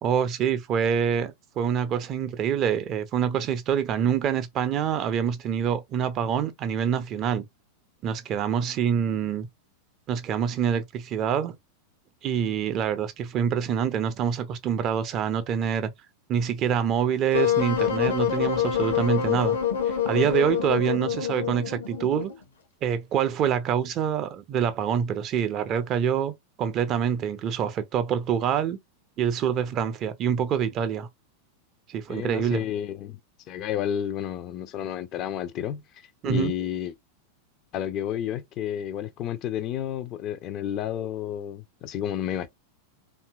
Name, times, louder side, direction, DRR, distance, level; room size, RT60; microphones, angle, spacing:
voice 1, 0.0-7.4 8.0-9.5 10.1-11.5 12.2-15.9 16.3-19.6 19.9-22.3 22.8-26.3 26.6-28.8 29.2-31.1 31.9-32.6 36.2-36.5, right 8 dB, 35° right, 0.4 m, -26 dB
Wind instrument woodwind instrument, 17.3-22.4, left 9 dB, 65° left, 0.7 m, -26 dB
voice 2, 32.1-33.2 33.5-35.8 36.3-36.9 37.7-42.5, left 10 dB, 35° left, 0.4 m, -31 dB
2.7 x 2.4 x 2.2 m
figure-of-eight pair, 90°, 0 cm